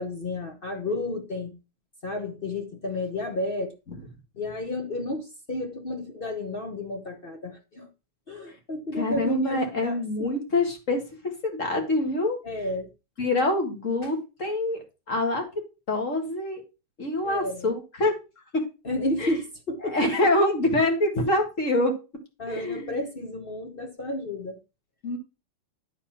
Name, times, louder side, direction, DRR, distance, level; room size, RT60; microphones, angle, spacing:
voice 1, 0.0-1.5 2.0-3.7 4.4-7.9 8.3-10.3 12.4-12.9 17.2-17.7 18.8-20.3 22.4-24.6, left 1 dB, 60° left, 0.5 m, -32 dB
voice 2, 9.0-11.0 11.4-12.4 13.2-15.4 15.9-16.6 17.0-18.1 18.5-18.6 19.2-19.3 19.8-21.9 22.5-23.0 25.0-25.2, left 2 dB, 35° left, 2.0 m, -25 dB
10.0 x 4.2 x 5.8 m
omnidirectional pair, 2.4 m